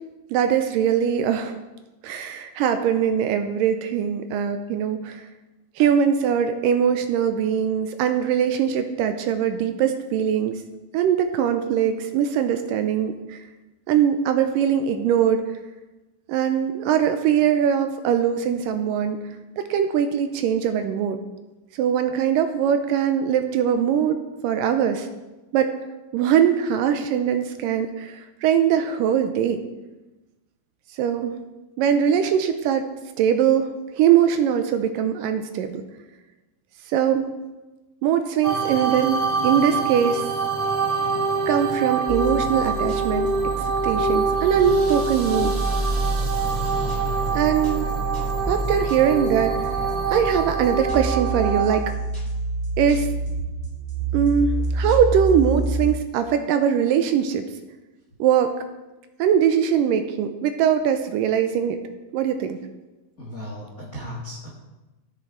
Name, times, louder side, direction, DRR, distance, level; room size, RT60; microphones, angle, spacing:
voice 1, 0.3-1.6 2.0-5.3 5.8-10.6 10.9-13.4 13.9-15.4 16.3-19.2 19.6-21.2 21.7-25.1 25.5-25.8 26.1-29.6 30.9-31.4 31.8-35.8 36.9-37.4 38.0-40.3 41.5-43.3 43.6-45.5 47.3-47.9 48.5-49.7 50.1-51.9 52.8-53.1 54.1-57.5 58.2-58.5 59.2-61.8 62.1-62.6, right 8 dB, 80° right, 8 dB, 2.1 m, -21 dB
sound 1, 38.4-51.8, right 4 dB, 40° right, 1.2 m, -25 dB
sound 2, 42.1-55.9, right 2 dB, 10° left, 2.4 m, -28 dB
voice 2, 63.2-64.5, equal, 75° left, -2 dB, 0.7 m, -36 dB
15.5 x 6.7 x 4.6 m, 1.1 s
omnidirectional pair, 4.3 m